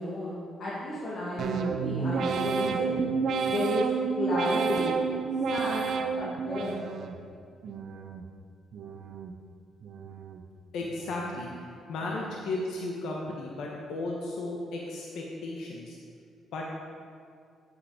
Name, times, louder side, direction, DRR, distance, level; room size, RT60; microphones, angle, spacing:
voice 1, 0.0-3.0 3.4-3.9 4.2-4.9 5.5-5.8 6.1-6.7, left 1 dB, 60° left, -8 dB, 2.2 m, -32 dB
sound 1, 1.4-7.2 7.6-8.3 8.7-9.4 9.8-10.5 10.9-11.5 12.0-12.5, right 5 dB, 65° right, 0.8 m, -31 dB
voice 2, 10.7-16.0 16.5-16.6, left 2 dB, 80° left, -2 dB, 1.1 m, -35 dB
8.5 x 7.8 x 5.1 m, 2.3 s
cardioid pair, 90°, 0 cm